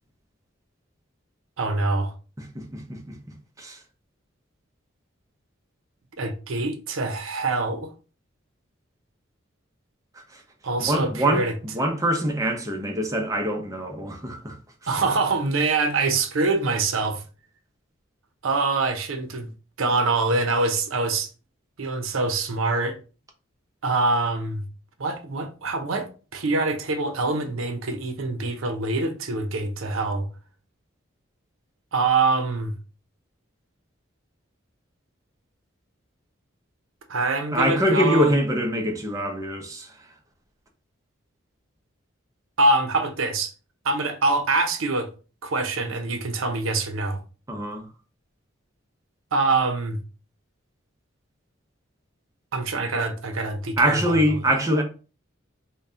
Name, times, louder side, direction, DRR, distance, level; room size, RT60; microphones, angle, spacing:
voice 1, 1.6-2.1 6.2-7.9 10.6-11.5 14.9-17.2 18.4-19.5 19.8-21.3 21.8-23.0 23.8-24.7 25.0-30.3 31.9-32.8 37.1-38.3 42.6-43.5 43.8-45.1 45.4-47.2 49.3-50.0 52.5-54.2, right 3 dB, 90° right, 0.6 m, -24 dB
voice 2, 2.4-3.2 3.6-3.8 10.1-10.4 10.8-14.6 14.8-14.9 37.5-40.1 47.5-47.9 53.8-54.8, equal, 15° right, 0.6 m, -24 dB
4.0 x 2.2 x 3.6 m
head